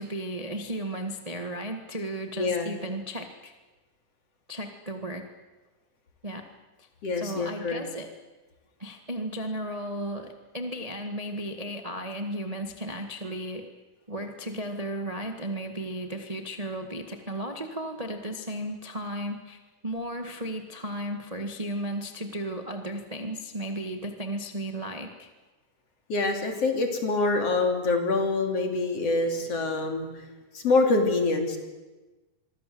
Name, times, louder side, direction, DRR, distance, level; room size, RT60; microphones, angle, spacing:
voice 1, 0.0-3.5 4.5-5.3 6.2-6.5 6.8-6.9 7.1-8.1 8.8-13.7 14.1-25.3, right 1 dB, 20° right, 5 dB, 1.0 m, -34 dB
voice 2, 2.4-2.7 7.0-7.8 26.1-30.1 30.5-31.6, left 3 dB, 50° left, 4 dB, 4.0 m, -25 dB
26.0 x 23.5 x 7.8 m, 1.2 s
omnidirectional pair, 3.7 m